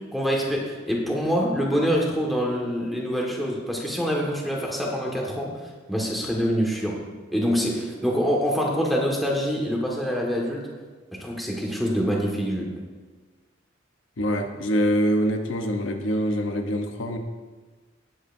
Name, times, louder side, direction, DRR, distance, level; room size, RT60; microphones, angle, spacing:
voice 1, 0.1-5.5 5.9-6.9 7.3-10.6 11.2-12.7, equal, ahead, -3 dB, 1.7 m, -25 dB
voice 2, 14.2-17.2, equal, 70° left, 4 dB, 0.9 m, -24 dB
19.0 x 8.0 x 2.7 m, 1.4 s
head